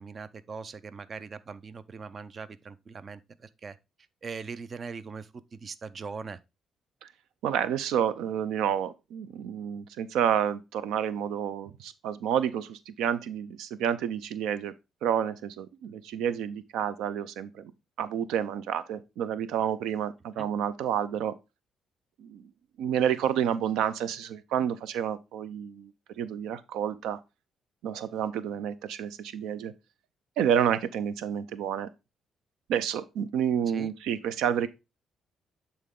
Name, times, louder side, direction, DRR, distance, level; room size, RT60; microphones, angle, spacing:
voice 1, 0.0-3.8 4.2-6.4 20.4-20.5 33.7-33.9, right 5 dB, 45° right, 0.5 m, -41 dB
voice 2, 7.4-14.7 15.0-17.7 18.0-21.3 22.2-22.4 22.8-25.9 26.2-27.2 27.8-29.7 30.4-31.9 32.7-34.7, right 9 dB, 90° right, 0.5 m, -29 dB
8.5 x 4.1 x 3.7 m
cardioid pair, 90°, 0 cm